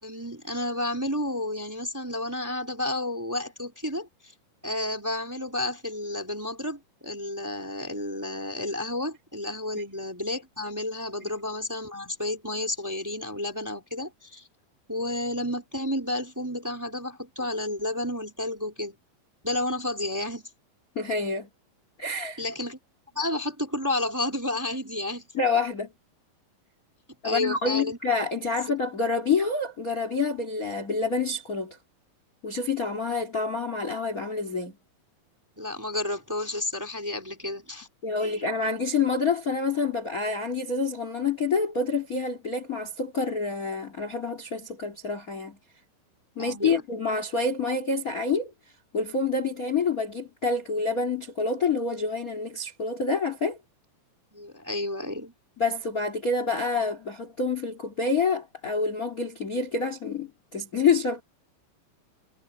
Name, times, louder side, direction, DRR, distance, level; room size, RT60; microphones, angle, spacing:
voice 1, 0.0-4.1 4.6-14.5 14.9-19.0 19.4-20.5 22.4-22.8 23.1-25.3 27.2-28.0 28.6-28.7 35.6-37.9 38.2-38.5 46.4-46.8 54.3-55.3, left 1 dB, 5° right, 3.0 m, -31 dB
voice 2, 20.9-21.5 22.0-22.4 25.3-25.9 27.2-31.8 32.4-34.7 38.0-45.6 46.4-48.5 48.9-53.6 55.6-61.2, left 4 dB, 25° left, 2.4 m, -27 dB
omnidirectional pair, 4.4 m